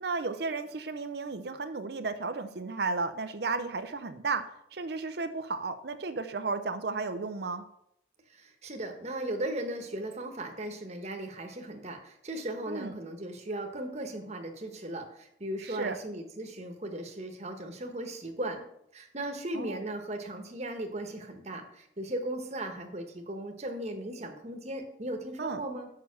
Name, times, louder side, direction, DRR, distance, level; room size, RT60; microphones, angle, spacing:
voice 1, 0.0-7.6 12.7-12.9 15.6-16.0 19.5-19.8 25.4-25.6, right 4 dB, 60° right, 9 dB, 0.6 m, -34 dB
voice 2, 8.3-18.6 18.9-25.9, right 1 dB, 35° right, 4 dB, 1.2 m, -37 dB
6.6 x 5.7 x 6.9 m, 0.75 s
head